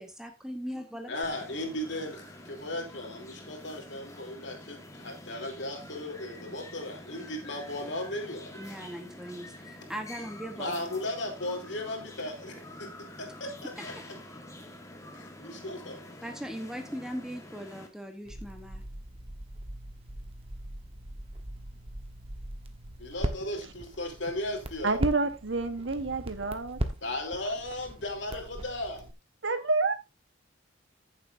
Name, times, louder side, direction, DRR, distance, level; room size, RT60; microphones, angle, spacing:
voice 1, 0.0-1.2 8.6-10.9 16.2-18.8, equal, 5° right, 1.0 m, -39 dB
voice 2, 1.1-8.7 10.6-13.9 15.1-16.1 23.0-25.0 27.0-29.1, left 1 dB, 60° left, 3.1 m, -36 dB
sound 1, 1.2-17.9, left 1 dB, 15° left, 1.5 m, -47 dB
Crackle, 18.2-29.1, right 1 dB, 30° right, 1.2 m, -39 dB
voice 3, 24.8-26.8 29.4-29.9, right 3 dB, 65° right, 1.2 m, -28 dB
14.0 x 7.4 x 2.6 m
head